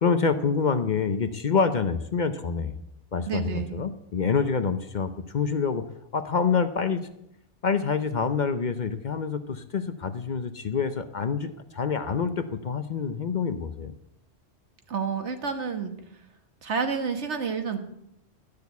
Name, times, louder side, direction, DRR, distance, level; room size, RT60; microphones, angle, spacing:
voice 1, 0.0-2.7 3.1-5.8 6.1-7.0 7.6-14.0, left 5 dB, 50° left, 10 dB, 0.7 m, -26 dB
voice 2, 3.3-3.8 14.9-15.9 16.6-17.8, right 6 dB, 75° right, 6 dB, 1.6 m, -29 dB
12.5 x 6.6 x 8.2 m, 0.81 s
omnidirectional pair, 1.2 m